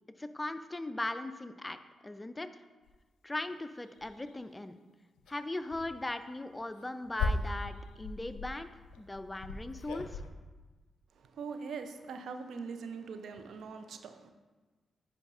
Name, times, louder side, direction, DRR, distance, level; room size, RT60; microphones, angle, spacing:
voice 1, 0.2-2.5 3.2-4.8 5.3-8.7 9.0-10.2, left 2 dB, 20° left, 0.4 m, -39 dB
sound 1, 2.9-3.0 3.5-3.6 4.0-4.4 5.2-5.4 5.7-5.9 6.5-10.3, left 3 dB, 85° left, 0.4 m, -37 dB
voice 2, 11.1-14.3, right 5 dB, 75° right, 0.5 m, -42 dB
9.8 x 4.9 x 2.5 m
supercardioid pair, 45°, 0 cm